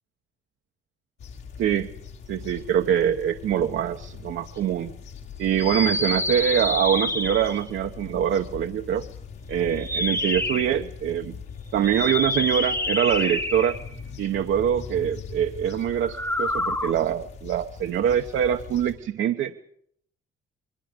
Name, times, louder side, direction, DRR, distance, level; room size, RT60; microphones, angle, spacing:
sound 1, 1.2-18.9, left 6 dB, 80° left, 4.5 m, -41 dB
voice 1, 1.6-1.9 2.3-4.9 5.4-9.1 9.5-11.4 11.7-13.8 14.2-19.5, right 9 dB, 75° right, 5 dB, 1.1 m, -24 dB
sound 2, 5.5-7.7 9.7-10.8 11.8-14.0 16.0-16.9, left 1 dB, 10° left, 1.0 m, -27 dB
29.5 x 21.5 x 5.2 m, 0.66 s
cardioid pair, 90°, 20 cm